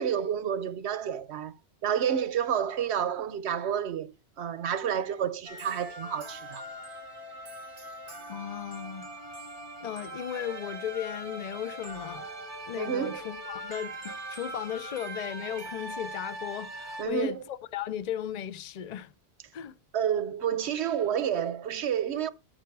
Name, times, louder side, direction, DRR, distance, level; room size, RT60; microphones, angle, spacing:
voice 1, 0.0-1.5 1.8-6.6 12.8-13.2 17.0-17.4 19.9-22.3, right 8 dB, 80° right, 1.0 m, -29 dB
sound 1, 5.5-17.1, right 1 dB, 50° right, 2.6 m, -41 dB
voice 2, 8.3-9.1 9.8-12.3 12.7-19.1 19.5-19.7, left 10 dB, 45° left, 0.6 m, -36 dB
13.0 x 4.5 x 4.7 m
omnidirectional pair, 1.1 m